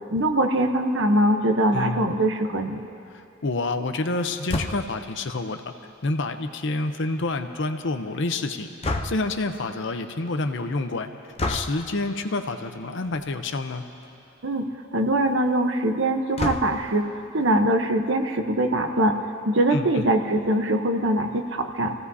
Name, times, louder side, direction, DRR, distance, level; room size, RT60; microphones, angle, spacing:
voice 1, 0.1-2.8 14.4-21.9, right 1 dB, 65° right, 5 dB, 1.0 m, -23 dB
voice 2, 1.7-2.2 3.4-5.6 6.0-8.7 9.0-11.1 11.5-13.8 19.7-20.1, left 2 dB, 65° left, 7 dB, 0.8 m, -28 dB
sound 1, 4.5-5.0 8.8-9.4 11.4-11.8 13.0-13.3 13.7-13.8 14.0-14.1 16.4-17.0, left 2 dB, 30° left, 0.7 m, -29 dB
27.0 x 16.5 x 2.8 m, 2.6 s
head